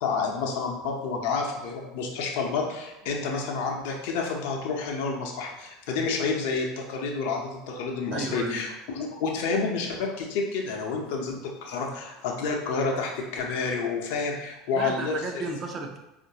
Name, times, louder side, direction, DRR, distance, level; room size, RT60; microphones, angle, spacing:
voice 1, 0.0-15.2, left 4 dB, 65° left, 0 dB, 0.6 m, -29 dB
voice 2, 8.1-8.6 14.7-16.0, right 3 dB, 35° right, 3 dB, 0.6 m, -33 dB
4.4 x 2.5 x 2.8 m, 0.93 s
hypercardioid pair, 75°, 0 cm